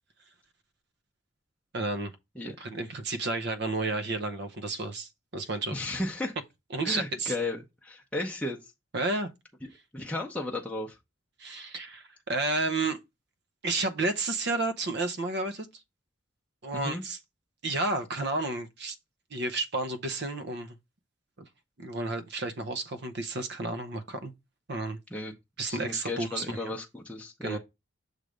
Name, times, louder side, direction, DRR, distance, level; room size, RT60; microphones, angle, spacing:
voice 1, 1.7-2.1 2.6-5.7 6.7-7.3 8.9-9.3 11.4-13.0 13.6-15.8 16.6-17.2 17.6-19.0 19.3-20.8 21.4-21.5 21.8-24.3 24.7-25.0 25.6-26.7 27.4-27.6, right 2 dB, 55° right, 0.7 m, -31 dB
voice 2, 5.7-6.3 6.8-8.7 9.9-11.0 16.7-17.0 25.1-25.3 25.6-27.6, left 2 dB, 5° left, 0.7 m, -34 dB
6.6 x 3.2 x 5.0 m
head